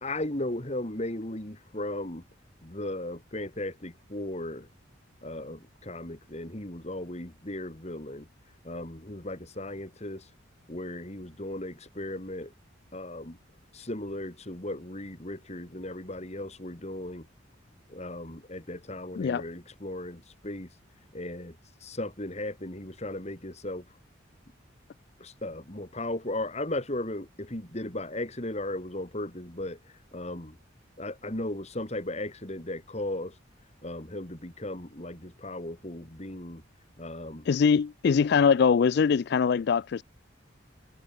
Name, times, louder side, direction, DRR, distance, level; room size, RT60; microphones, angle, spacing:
voice 1, 0.0-2.3 2.6-4.7 5.2-8.3 8.6-10.3 10.7-12.5 12.9-13.4 13.7-17.3 17.9-20.7 21.1-21.6 21.8-23.8 25.2-30.6 31.0-33.4 33.8-36.6 37.0-37.5, left 1 dB, 35° left, 2.8 m, -36 dB
voice 2, 37.5-40.0, left 6 dB, 55° left, 0.3 m, -22 dB
head